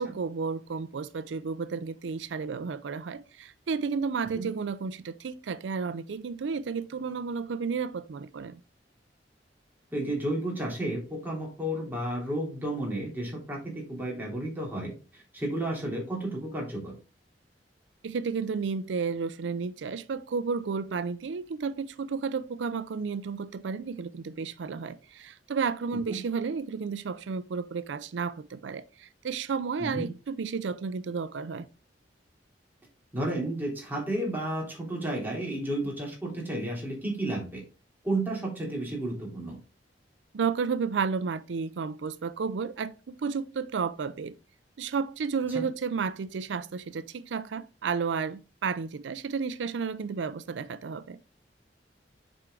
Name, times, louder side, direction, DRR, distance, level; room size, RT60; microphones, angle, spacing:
voice 1, 0.0-8.6 18.0-31.7 40.3-44.4 44.8-51.2, right 5 dB, 90° right, 0.4 m, -32 dB
voice 2, 9.9-14.9 15.3-16.9 26.1-26.2 29.8-30.1 33.1-37.6 38.0-39.6 45.5-45.6, right 1 dB, 10° right, 3.3 m, -32 dB
7.7 x 4.7 x 3.7 m
head